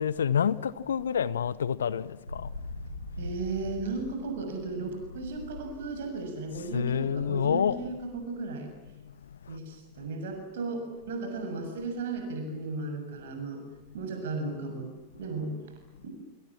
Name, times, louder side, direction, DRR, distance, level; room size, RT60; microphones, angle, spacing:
voice 1, 0.0-3.1 6.5-7.9 9.0-9.6, left 8 dB, 65° left, 0.9 m, -29 dB
sound 1, 2.3-8.1, left 1 dB, 85° left, 5.5 m, -43 dB
voice 2, 3.2-8.7 9.5-13.6 13.9-15.5 16.0-16.1, right 3 dB, 60° right, 6.8 m, -35 dB
28.5 x 27.0 x 7.3 m
figure-of-eight pair, 90°, 0 cm